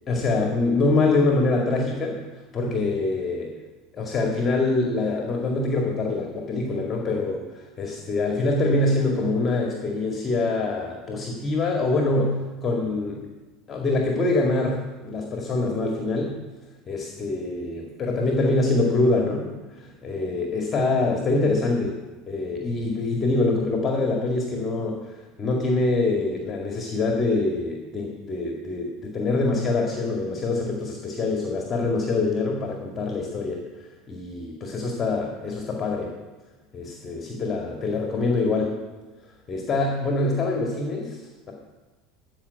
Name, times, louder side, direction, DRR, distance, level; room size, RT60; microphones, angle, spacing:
voice 1, 0.1-2.2 2.5-3.5 3.9-13.3 13.7-16.3 16.9-22.0 22.3-33.6 34.1-36.1 36.7-38.7 39.5-41.2, left 2 dB, 30° left, 1 dB, 2.1 m, -25 dB
14.5 x 5.5 x 8.0 m, 1.2 s
figure-of-eight pair, 70°, 0 cm